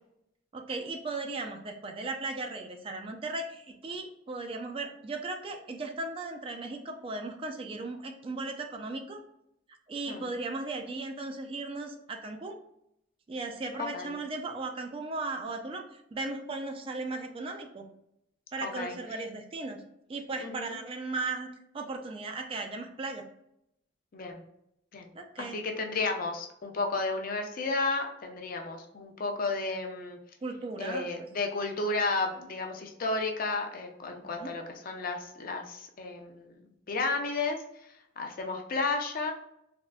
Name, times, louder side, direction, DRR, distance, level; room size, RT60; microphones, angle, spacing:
voice 1, 0.5-9.2 9.9-12.6 13.3-17.9 18.5-19.8 20.1-21.5 21.7-23.2 25.1-25.6 30.4-31.3 34.2-34.5, right 3 dB, 30° right, 5 dB, 0.3 m, -37 dB
voice 2, 18.6-19.0 20.4-20.8 24.1-24.4 24.9-25.1 25.4-30.2 30.8-36.6 36.9-37.6 38.2-39.3, left 3 dB, 50° left, 3 dB, 0.5 m, -32 dB
3.5 x 2.4 x 2.2 m, 0.78 s
head